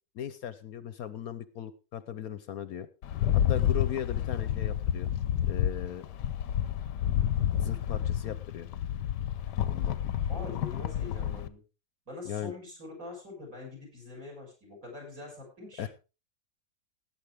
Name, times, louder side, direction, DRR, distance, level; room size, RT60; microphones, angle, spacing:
voice 1, 0.1-2.9 3.3-5.1 5.5-6.1 7.6-8.7 9.6-10.0 12.2-12.5 15.8-15.9, left 10 dB, 65° left, 14 dB, 1.1 m, -37 dB
Rattle, 3.0-11.5, left 10 dB, 85° left, 1.4 m, -29 dB
voice 2, 10.3-11.6 12.1-15.9, left 3 dB, 55° right, 0 dB, 7.6 m, -43 dB
18.0 x 8.8 x 3.5 m, 0.31 s
omnidirectional pair, 1.8 m